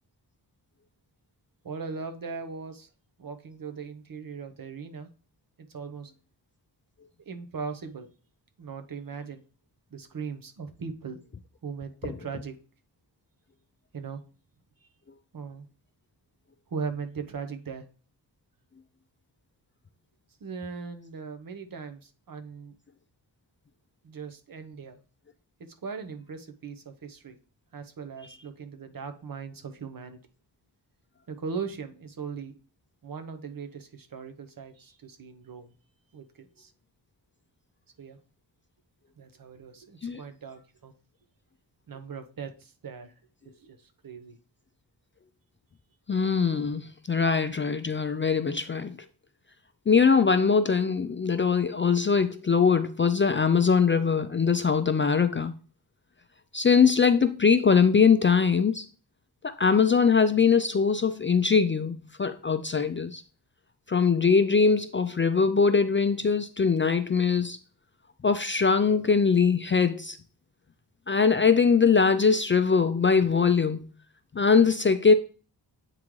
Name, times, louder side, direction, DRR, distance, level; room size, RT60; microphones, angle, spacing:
voice 1, 1.6-2.9 3.2-5.1 5.7-6.1 7.3-8.1 8.6-9.4 9.9-11.2 11.6-12.5 13.9-14.2 15.3-15.7 16.7-17.9 20.4-22.8 24.0-25.0 25.6-27.4 27.7-30.2 31.3-32.6 33.0-35.7 36.1-36.7 38.0-38.2 39.2-40.9 41.9-43.1 43.6-44.4, right 5 dB, 50° right, 0.9 m, -39 dB
voice 2, 46.1-49.0 49.9-55.5 56.5-58.9 59.4-63.2 63.9-67.6 68.2-70.2 71.1-73.9 74.3-75.1, left 5 dB, 30° left, 0.4 m, -22 dB
8.4 x 3.7 x 3.1 m
wide cardioid pair, 105°, 43 cm